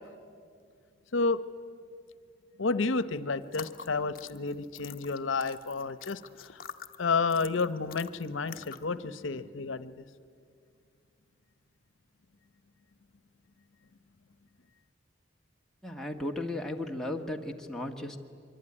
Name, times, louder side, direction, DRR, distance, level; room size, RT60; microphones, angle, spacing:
voice 1, 2.6-6.6 7.0-10.0, left 4 dB, 85° left, 15 dB, 0.8 m, -31 dB
sound 1, 3.4-9.0, left 7 dB, 50° left, 1.0 m, -47 dB
voice 2, 15.8-18.2, left 1 dB, 5° left, 1 dB, 1.6 m, -35 dB
24.0 x 23.5 x 9.9 m, 2.3 s
head